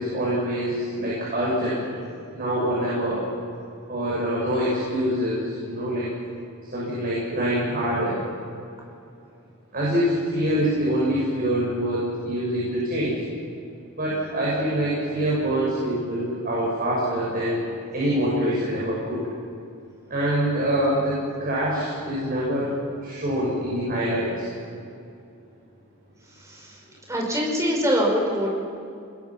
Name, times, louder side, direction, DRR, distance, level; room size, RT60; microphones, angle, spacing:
voice 1, 0.0-1.8 2.3-3.2 3.9-6.1 6.6-8.2 9.7-13.1 13.9-19.2 20.1-22.7 23.0-24.5, equal, 45° right, -7 dB, 6.5 m, -25 dB
voice 2, 26.4-26.8 27.1-28.5, equal, 15° right, -2 dB, 5.3 m, -24 dB
28.0 x 21.5 x 6.0 m, 2.5 s
head